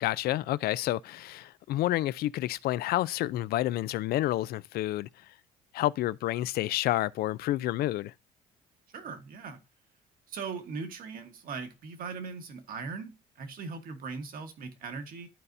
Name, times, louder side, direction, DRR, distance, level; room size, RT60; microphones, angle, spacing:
voice 1, 0.0-5.1 5.7-8.1, left 15 dB, 65° left, 0.4 m, -29 dB
voice 2, 8.9-9.6 10.3-15.3, right 5 dB, 60° right, 1.3 m, -39 dB
12.0 x 4.2 x 2.6 m
cardioid pair, 110°, 17 cm